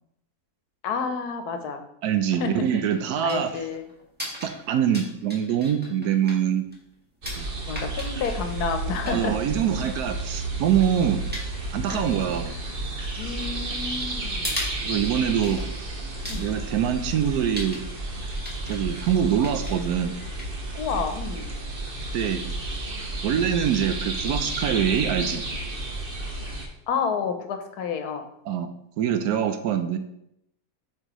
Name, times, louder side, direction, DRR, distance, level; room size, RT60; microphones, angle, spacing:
voice 1, 0.8-1.8 2.3-2.7 3.2-3.9 7.7-9.4 11.9-12.2 13.2-14.6 15.6-15.7 16.3-16.5 20.7-21.5 26.9-28.3, left 6 dB, 80° left, 7 dB, 1.3 m, -30 dB
voice 2, 2.0-3.5 4.4-6.7 7.4-7.5 9.1-11.2 11.7-12.5 14.8-15.6 16.3-17.8 18.7-20.1 22.1-22.4 23.2-25.4 28.5-28.7 29.0-30.0, right 9 dB, 85° right, 9 dB, 1.1 m, -24 dB
sound 1, 2.4-21.4, left 1 dB, 5° right, 1.2 m, -41 dB
sound 2, 7.2-26.7, right 2 dB, 40° right, 1.0 m, -32 dB
7.6 x 4.5 x 3.0 m, 0.77 s
omnidirectional pair, 1.6 m